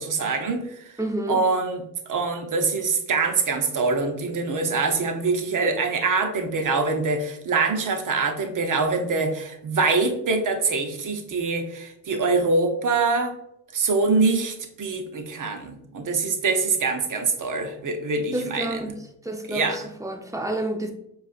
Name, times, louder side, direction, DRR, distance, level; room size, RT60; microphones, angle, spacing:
voice 1, 0.0-0.9 1.3-1.8 2.1-13.4 13.7-18.9 19.5-19.9, right 4 dB, 50° right, 6 dB, 0.8 m, -24 dB
voice 2, 1.0-1.4 18.3-19.0 19.2-20.9, right 1 dB, 10° right, 4 dB, 0.6 m, -29 dB
4.8 x 2.4 x 2.4 m, 0.77 s
cardioid pair, 65°, 41 cm